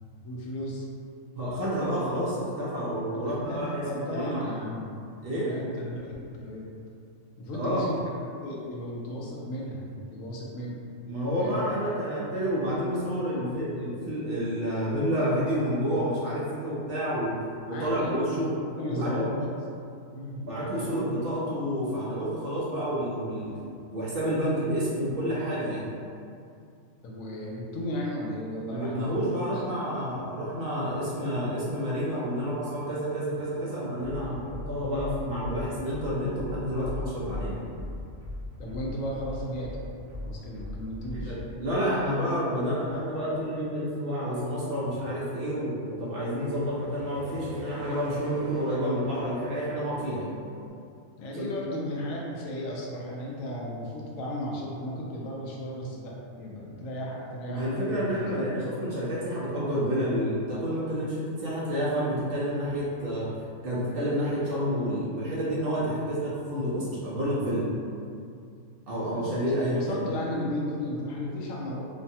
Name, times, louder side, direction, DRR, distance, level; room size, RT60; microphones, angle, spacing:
voice 1, 0.2-0.9 3.1-5.0 5.4-6.7 7.4-7.9 8.4-10.8 11.4-11.6 17.7-19.5 20.1-21.1 27.0-29.6 38.6-41.4 51.2-58.7 68.9-71.8, left 1 dB, 85° left, -3 dB, 1.0 m, -35 dB
voice 2, 1.4-3.8 4.1-4.5 5.2-5.5 7.5-7.9 11.1-17.4 17.7-18.5 18.9-19.3 20.4-23.5 23.9-25.9 28.7-37.6 41.2-50.3 51.3-51.5 57.5-63.3 63.6-67.7 68.9-70.0, equal, 60° right, -8 dB, 0.6 m, -29 dB
sound 1, 34.0-41.5, left 1 dB, 25° right, 0.8 m, -39 dB
sound 2, 46.2-50.7, right 1 dB, 30° left, 0.4 m, -47 dB
3.1 x 2.2 x 2.6 m, 2.4 s
omnidirectional pair, 1.4 m